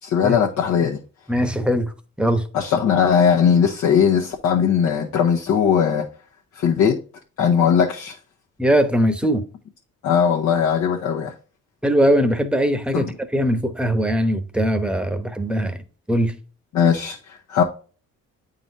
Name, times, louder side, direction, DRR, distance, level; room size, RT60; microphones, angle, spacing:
voice 1, 0.0-1.0 2.5-6.1 6.5-7.0 7.4-8.2 10.0-11.3 12.9-13.1 16.7-17.6, left 7 dB, 75° left, 1.1 m, -19 dB
voice 2, 1.3-1.9 2.2-2.4 8.6-9.4 11.8-15.8 16.1-16.4, equal, 5° right, 0.9 m, -20 dB
8.8 x 4.0 x 2.7 m
cardioid pair, 90°, 30 cm